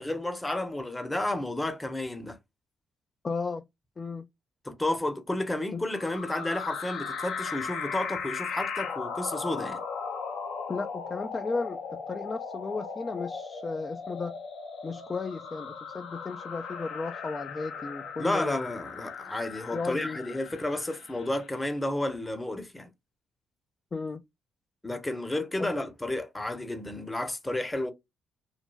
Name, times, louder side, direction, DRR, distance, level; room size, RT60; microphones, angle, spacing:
voice 1, 0.0-2.4 4.6-9.8 18.2-22.9 24.8-27.9, left 1 dB, 15° left, 0.7 m, -31 dB
voice 2, 3.2-3.6 4.0-4.3 5.7-5.8 10.7-14.4 14.8-18.6 19.7-20.2 23.9-24.2 25.6-25.7, left 4 dB, 35° left, 0.4 m, -34 dB
sound 1, 5.9-21.5, left 5 dB, 75° left, 0.7 m, -37 dB
3.2 x 2.2 x 2.2 m
supercardioid pair, 60°, 0 cm